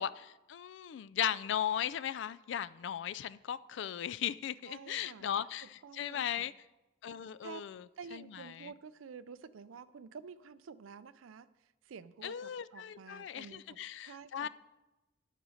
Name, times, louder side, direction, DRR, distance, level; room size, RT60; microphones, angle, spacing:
voice 1, 0.0-6.5 7.0-7.8 8.1-8.7 12.2-14.5, left 9 dB, 65° left, 17 dB, 0.3 m, -37 dB
voice 2, 4.7-5.3 5.6-6.5 7.4-7.6 8.0-14.5, right 5 dB, 90° right, 15 dB, 0.4 m, -50 dB
10.0 x 5.1 x 6.3 m, 1.0 s
head